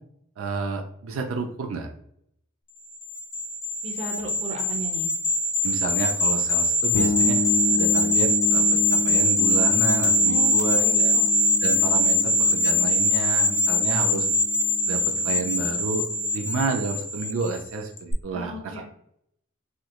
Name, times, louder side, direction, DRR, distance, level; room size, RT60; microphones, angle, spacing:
voice 1, 0.4-1.9 5.6-7.4 7.7-11.2 11.6-14.3 14.9-16.1 16.3-18.8, right 4 dB, 80° right, 3 dB, 0.4 m, -30 dB
sound 1, 3.0-17.6 18.0-18.1, left 1 dB, 25° left, 0.6 m, -22 dB
voice 2, 3.8-5.1 10.2-11.2 18.3-18.8, right 1 dB, 30° right, 0 dB, 0.7 m, -36 dB
sound 2, 6.9-16.5, left 3 dB, 75° left, 0.4 m, -31 dB
3.1 x 2.9 x 2.3 m, 0.70 s
head